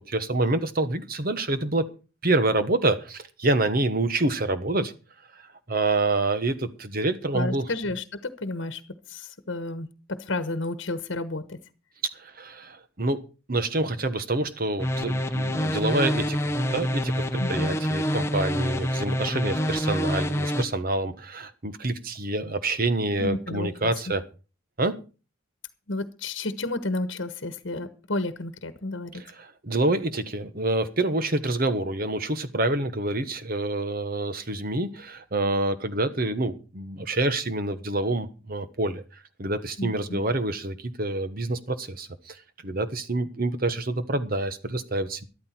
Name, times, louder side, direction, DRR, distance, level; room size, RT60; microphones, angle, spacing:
voice 1, 0.1-1.9 2.2-4.9 5.3-5.4 5.7-7.7 12.1-13.2 13.5-24.2 24.8-25.0 29.1-39.0 39.4-45.2, right 2 dB, 45° right, 11 dB, 1.3 m, -27 dB
voice 2, 7.3-8.8 9.1-11.6 17.4-17.8 23.2-24.1 25.9-29.2 39.8-40.2, left 2 dB, 65° left, 12 dB, 1.2 m, -32 dB
sound 1, 14.8-20.6, equal, 15° left, 0.9 m, -26 dB
13.0 x 12.0 x 4.5 m, 0.34 s
head